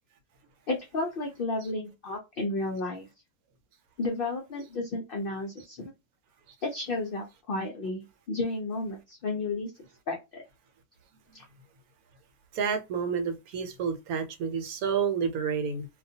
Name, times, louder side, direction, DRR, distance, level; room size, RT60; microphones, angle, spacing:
voice 1, 0.7-3.1 4.0-5.9 6.6-9.7 10.1-10.4 11.3-11.4, left 2 dB, 70° left, 0.5 m, -32 dB
voice 2, 12.5-15.9, right 6 dB, 80° right, 1.1 m, -29 dB
2.4 x 2.2 x 2.6 m
omnidirectional pair, 1.5 m